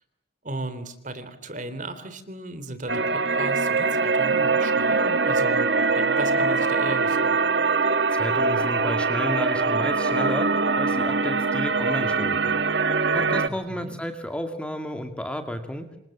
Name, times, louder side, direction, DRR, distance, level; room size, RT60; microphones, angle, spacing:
voice 1, 0.4-5.7 5.9-7.3 13.5-13.9, right 2 dB, 40° right, 11 dB, 3.5 m, -35 dB
sound 1, 2.9-13.5, right 4 dB, 60° right, 1.4 m, -23 dB
voice 2, 8.1-12.6 13.1-15.9, equal, 5° left, 6 dB, 2.2 m, -32 dB
28.5 x 26.0 x 7.4 m, 0.81 s
head